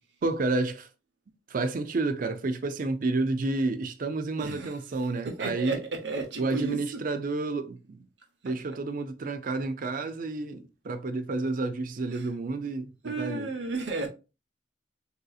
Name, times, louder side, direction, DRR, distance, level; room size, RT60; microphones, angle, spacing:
voice 1, 0.2-0.9 1.5-5.8 6.4-8.1 8.4-13.5, right 3 dB, 50° right, 0.4 m, -30 dB
voice 2, 4.4-4.7 5.2-6.8 12.1-12.2 13.0-14.1, right 3 dB, 85° right, 0.8 m, -33 dB
3.6 x 2.7 x 2.4 m
head